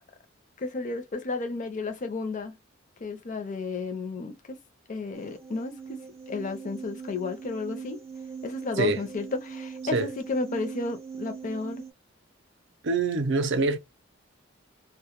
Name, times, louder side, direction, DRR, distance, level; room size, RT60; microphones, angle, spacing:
voice 1, 0.6-2.6 3.0-4.6 4.9-6.0 6.3-8.0 8.4-11.8, left 3 dB, 40° left, 0.5 m, -33 dB
sound 1, 5.1-11.9, right 6 dB, 15° right, 0.4 m, -41 dB
voice 2, 12.8-13.8, right 3 dB, 60° right, 0.5 m, -25 dB
2.1 x 2.1 x 2.9 m
head